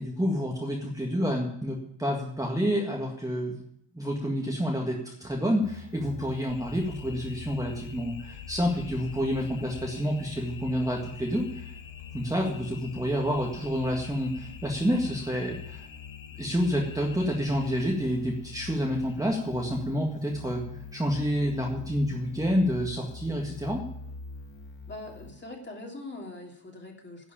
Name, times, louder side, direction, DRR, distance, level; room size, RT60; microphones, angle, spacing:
voice 1, 0.0-3.6 3.9-11.7 12.1-15.9 16.4-20.6 20.9-23.8, equal, 5° right, -1 dB, 1.8 m, -28 dB
sound 1, 5.6-25.3, left 6 dB, 65° left, 2.1 m, -44 dB
sound 2, 6.5-19.4, left 5 dB, 40° left, 1.4 m, -48 dB
voice 2, 24.9-27.3, left 2 dB, 20° left, 1 dB, 3.0 m, -42 dB
11.5 x 6.3 x 8.7 m, 0.74 s
cardioid pair, 120°, 49 cm